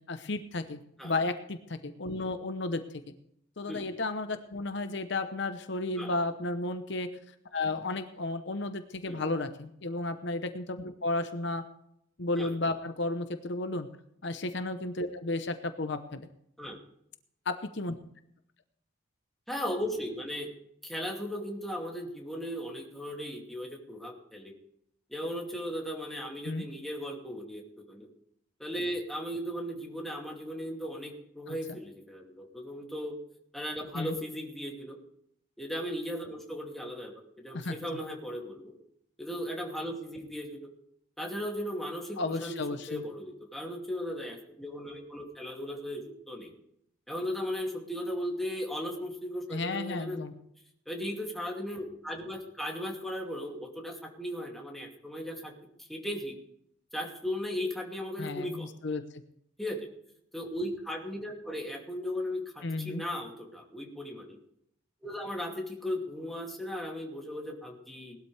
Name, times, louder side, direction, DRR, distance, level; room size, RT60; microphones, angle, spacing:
voice 1, 0.1-2.8 3.6-7.1 7.5-11.6 12.2-13.9 14.2-16.3 17.5-17.9 26.4-26.6 31.5-31.8 33.9-34.2 37.5-38.0 42.2-43.0 49.5-50.3 58.2-59.0 62.6-63.0, left 2 dB, 60° left, 9 dB, 0.9 m, -33 dB
voice 2, 19.5-20.5 20.8-24.5 25.1-28.1 28.6-33.2 33.5-35.0 35.6-37.1 37.4-38.7 39.2-40.7 41.2-46.5 47.1-50.2 50.9-55.5 55.9-56.3 56.9-58.7 59.6-59.9 60.3-64.4 65.0-68.2, equal, ahead, -1 dB, 2.6 m, -37 dB
19.5 x 12.5 x 3.4 m, 0.73 s
head